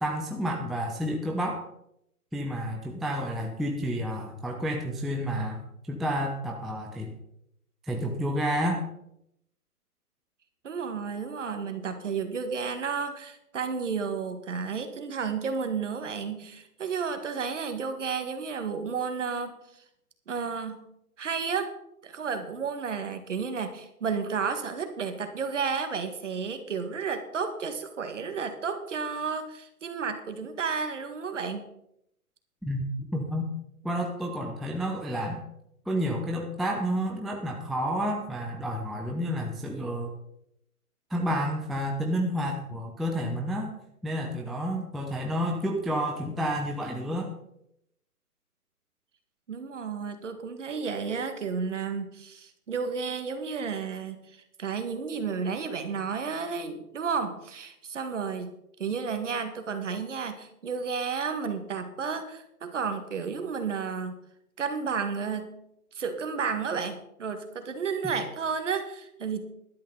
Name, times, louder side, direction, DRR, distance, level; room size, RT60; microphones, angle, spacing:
voice 1, 0.0-1.6 2.3-7.1 7.8-8.8 32.6-33.5 33.8-35.5 35.9-40.1 41.1-43.7 44.0-47.3, equal, ahead, 1 dB, 0.4 m, -30 dB
voice 2, 10.6-19.5 20.3-20.9 21.2-21.7 22.0-31.6 49.5-58.5 58.8-64.2 64.6-65.5 65.9-69.4, right 5 dB, 50° right, 7 dB, 1.9 m, -32 dB
13.0 x 12.0 x 4.0 m, 0.78 s
hypercardioid pair, 170°, 46 cm